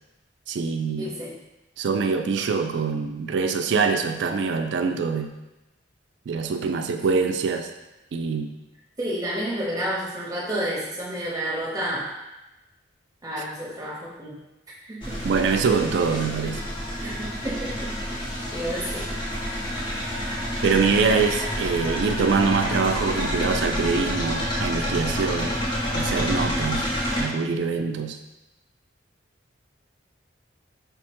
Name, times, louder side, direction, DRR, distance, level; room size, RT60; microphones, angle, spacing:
voice 1, 0.5-1.1 1.8-5.3 6.3-7.7 8.1-8.5 15.2-16.6 20.6-25.6 25.9-26.9 27.2-28.2, right 5 dB, 65° right, 6 dB, 0.3 m, -24 dB
voice 2, 1.0-1.3 9.0-12.1 13.2-14.3 14.8-15.3 17.0-17.9 18.5-19.1, right 1 dB, 20° right, -6 dB, 0.7 m, -30 dB
sound 1, 15.0-27.2, equal, 25° left, 0.7 m, -28 dB
5.2 x 2.1 x 2.9 m, 0.99 s
head